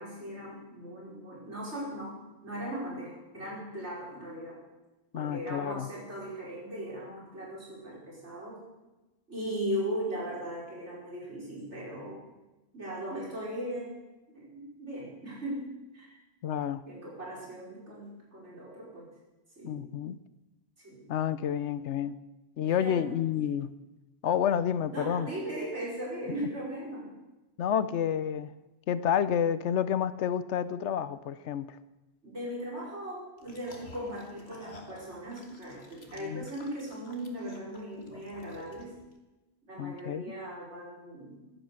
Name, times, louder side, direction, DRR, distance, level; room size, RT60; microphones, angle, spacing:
voice 1, 0.0-4.6 5.1-8.6 9.3-12.3 12.7-13.9 14.3-15.7 15.9-16.2 16.9-19.1 19.6-19.8 20.8-21.1 22.6-23.0 24.9-27.1 32.2-38.9 39.6-41.4, right 1 dB, 80° right, -5 dB, 5.7 m, -38 dB
voice 2, 5.1-5.9 16.4-16.8 19.6-20.2 21.1-22.2 22.6-23.7 24.2-25.3 27.6-28.5 28.9-31.8 36.2-36.5 39.8-40.4, left 9 dB, 85° left, 15 dB, 1.0 m, -29 dB
sound 1, 33.4-39.1, left 2 dB, 65° left, 2.0 m, -52 dB
15.5 x 11.0 x 6.5 m, 1.1 s
omnidirectional pair, 1.2 m